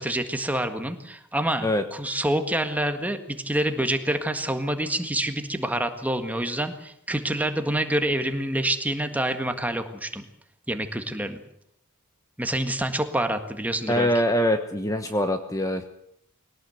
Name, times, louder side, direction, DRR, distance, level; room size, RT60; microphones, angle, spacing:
voice 1, 0.0-10.2 10.7-11.4 12.4-14.1, right 1 dB, 5° right, 7 dB, 1.7 m, -27 dB
voice 2, 13.9-15.8, equal, 15° left, 7 dB, 1.1 m, -23 dB
22.0 x 18.0 x 8.0 m, 0.73 s
head